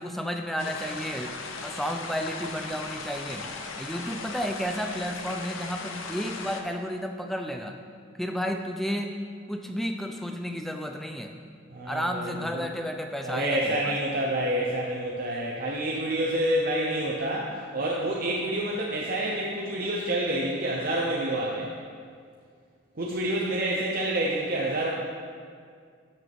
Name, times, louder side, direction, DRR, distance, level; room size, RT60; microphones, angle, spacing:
voice 1, 0.0-1.3 1.6-7.8 8.2-9.2 9.5-11.3 11.8-14.0 23.3-23.4, equal, ahead, 4 dB, 0.4 m, -32 dB
sound 1, 0.6-6.6, left 4 dB, 80° left, 0.8 m, -38 dB
voice 2, 11.7-12.7 13.2-21.7 23.0-24.9, right 1 dB, 45° right, -3 dB, 0.8 m, -28 dB
12.5 x 6.2 x 3.5 m, 2.1 s
head